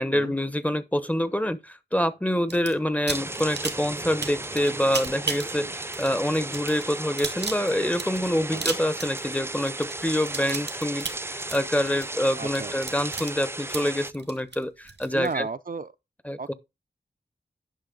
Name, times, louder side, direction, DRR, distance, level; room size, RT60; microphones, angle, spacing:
voice 1, 0.0-15.5 16.2-16.5, equal, 10° left, 0.9 m, -26 dB
sound 1, 2.5-2.7 3.1-15.3, right 4 dB, 85° right, 1.8 m, -34 dB
sound 2, 3.1-14.1, right 2 dB, 15° right, 0.4 m, -35 dB
voice 2, 12.4-12.7 15.1-15.9 16.4-16.5, right 4 dB, 55° right, 0.6 m, -34 dB
10.5 x 5.5 x 3.9 m
cardioid pair, 50°, 17 cm